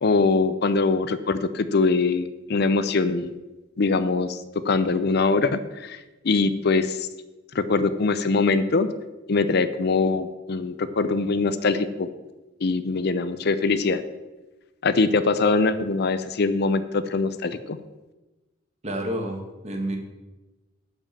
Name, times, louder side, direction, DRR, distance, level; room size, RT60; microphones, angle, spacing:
voice 1, 0.0-3.3 3.8-4.4 4.6-7.1 7.5-8.9 9.3-12.1 12.6-14.0 14.8-17.8, left 3 dB, 55° left, 12 dB, 0.5 m, -23 dB
voice 2, 18.8-20.0, right 1 dB, 35° right, 3 dB, 1.7 m, -29 dB
10.0 x 5.3 x 7.2 m, 1.1 s
head